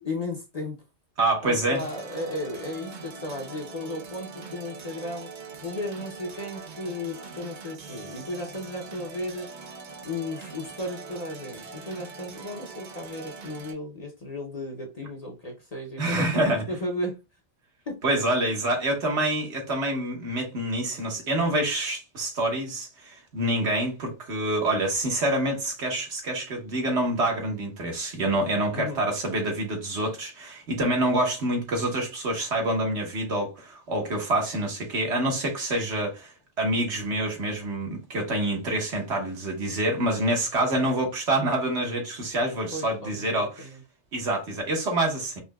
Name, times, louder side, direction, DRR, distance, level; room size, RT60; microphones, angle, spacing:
voice 1, 0.0-0.8 1.4-5.3 5.6-9.5 10.0-17.2 17.9-18.0 28.7-29.1 42.7-43.8, left 1 dB, 40° left, 0.7 m, -35 dB
voice 2, 1.2-1.8 16.0-16.6 18.0-43.7 44.1-45.4, right 1 dB, 70° right, 1.5 m, -27 dB
sound 1, 1.7-13.7, right 4 dB, 50° right, 0.7 m, -42 dB
5.2 x 2.8 x 2.2 m
omnidirectional pair, 1.2 m